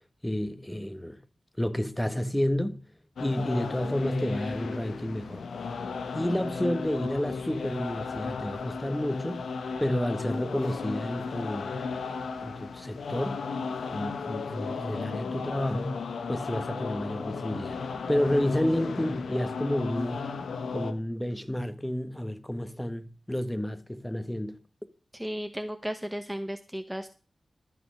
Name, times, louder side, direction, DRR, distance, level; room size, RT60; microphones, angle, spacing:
voice 1, 0.2-1.2 1.6-2.8 3.2-5.4 6.1-9.4 9.8-11.9 12.4-13.5 13.9-20.2 20.7-24.6, left 1 dB, 10° left, 1.4 m, -30 dB
sound 1, 3.2-20.9, left 5 dB, 85° left, 1.0 m, -35 dB
voice 2, 25.1-27.1, equal, 5° right, 1.0 m, -34 dB
13.5 x 6.1 x 6.4 m
cardioid pair, 40°, 0 cm